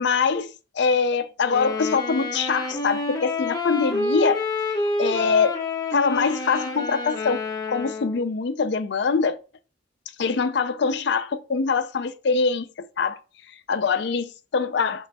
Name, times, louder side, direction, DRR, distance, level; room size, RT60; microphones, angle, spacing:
voice 1, 0.0-4.4 4.7-5.6 5.9-7.4 7.7-9.4 10.2-13.2 13.5-15.1, left 5 dB, 60° left, 0.4 m, -24 dB
sound 1, 1.4-8.3, left 2 dB, 20° left, 0.7 m, -28 dB
3.3 x 3.1 x 4.0 m
head